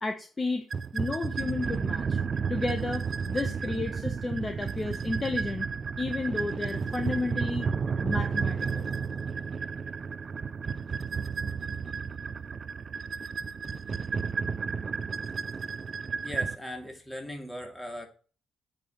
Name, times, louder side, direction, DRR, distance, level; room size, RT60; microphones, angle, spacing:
voice 1, 0.0-0.6 0.9-2.2 2.5-5.7 6.0-7.7 8.0-8.9, left 3 dB, 25° left, 6 dB, 1.2 m, -32 dB
sound 1, 0.7-16.5, right 5 dB, 40° right, 0.5 m, -32 dB
voice 2, 16.2-18.1, left 1 dB, 5° left, 3 dB, 2.9 m, -39 dB
8.1 x 5.3 x 7.5 m, 0.37 s
cardioid pair, 105°, 0 cm